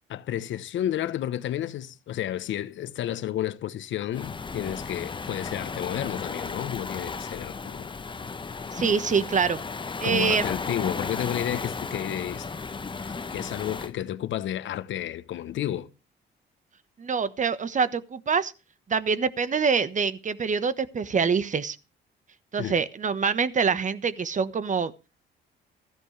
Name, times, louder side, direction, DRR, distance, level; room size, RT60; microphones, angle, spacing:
voice 1, 0.1-7.9 10.0-12.5 13.0-15.9 22.6-22.8, left 11 dB, 75° left, 1.0 m, -31 dB
Waves surf, 4.1-13.9, left 4 dB, 25° left, 0.9 m, -34 dB
voice 2, 8.7-9.6 10.0-10.5 17.0-18.5 18.9-21.8 22.5-24.9, right 5 dB, 40° right, 1.3 m, -25 dB
15.0 x 14.0 x 3.3 m
cardioid pair, 90°, 20 cm